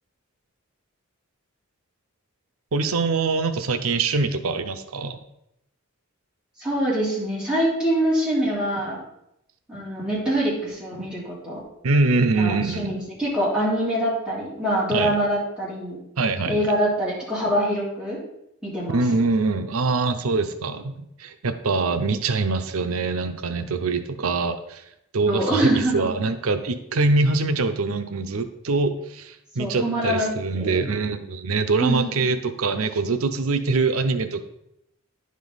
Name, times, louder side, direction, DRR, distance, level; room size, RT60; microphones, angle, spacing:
voice 1, 2.7-5.2 11.8-12.9 14.9-15.1 16.2-16.6 18.9-24.8 25.1-34.4, right 3 dB, 85° right, 9 dB, 0.6 m, -24 dB
voice 2, 6.6-9.0 9.7-11.6 12.4-16.0 16.5-18.2 18.6-19.0 25.3-26.0 29.6-30.9 31.8-32.1, right 1 dB, 5° right, -8 dB, 3.2 m, -24 dB
10.5 x 5.2 x 4.0 m, 0.80 s
head